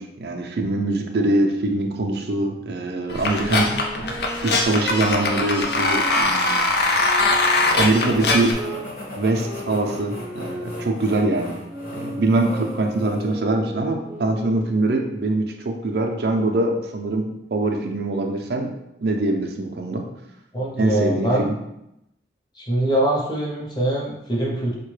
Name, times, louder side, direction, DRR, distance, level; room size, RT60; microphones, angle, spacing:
voice 1, 0.0-3.7 4.4-6.7 7.8-8.5 9.2-11.6 11.9-18.7 19.0-20.0 20.8-21.5, right 2 dB, 65° right, 3 dB, 0.4 m, -23 dB
sound 1, 3.1-8.5, left 2 dB, 65° left, 0.5 m, -21 dB
sound 2, 3.2-8.9 9.4-15.0, equal, 10° right, 0.5 m, -36 dB
sound 3, 7.6-13.4, equal, 50° left, 1.0 m, -37 dB
voice 2, 20.5-21.5 22.6-24.8, right 1 dB, 25° left, -3 dB, 0.7 m, -23 dB
4.5 x 2.2 x 3.1 m, 0.84 s
head